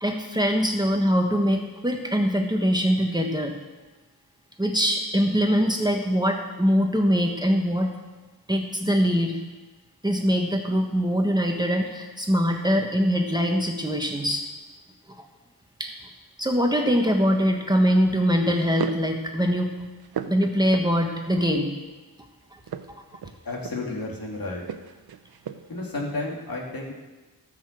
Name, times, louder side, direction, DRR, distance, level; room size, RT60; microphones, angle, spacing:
voice 1, 0.0-3.5 4.6-7.9 8.5-9.4 10.0-14.5 15.8-15.9 16.4-19.7 20.3-21.7, equal, 10° right, 2 dB, 1.3 m, -23 dB
sound 1, 17.3-17.7 18.5-19.1 19.6-21.2 22.5-24.0 24.6-25.8, right 8 dB, 75° right, 0.7 m, -37 dB
voice 2, 23.4-24.6 25.7-26.9, left 2 dB, 70° left, -2 dB, 2.9 m, -32 dB
14.0 x 6.8 x 7.5 m, 1.2 s
wide cardioid pair, 105°, 37 cm